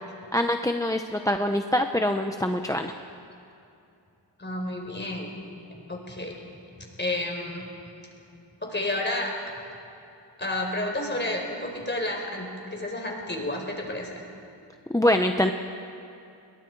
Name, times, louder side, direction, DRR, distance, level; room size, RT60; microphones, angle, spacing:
voice 1, 0.3-2.9 14.9-15.5, left 1 dB, 5° left, 6 dB, 0.8 m, -24 dB
voice 2, 4.4-5.3 5.7-6.4 7.0-7.7 8.3-9.4 10.4-14.2, left 1 dB, 25° left, 1 dB, 4.5 m, -31 dB
29.5 x 22.0 x 4.7 m, 2.7 s
wide cardioid pair, 95°, 46 cm